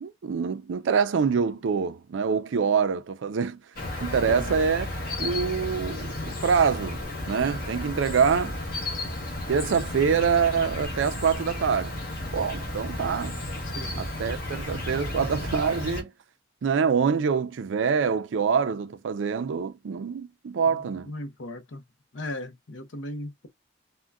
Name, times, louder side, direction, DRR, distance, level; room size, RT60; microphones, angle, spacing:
voice 1, 0.0-3.6 4.0-4.9 5.2-7.0 7.3-8.5 9.5-12.0 12.3-13.4 14.0-16.1 16.6-21.1, right 6 dB, 85° right, 0.4 m, -25 dB
Insect, 3.8-16.0, left 1 dB, 50° left, 1.0 m, -33 dB
voice 2, 4.3-4.6 13.7-14.1 20.7-21.8 22.1-23.5, left 1 dB, 85° left, 0.7 m, -37 dB
3.6 x 2.1 x 2.2 m
head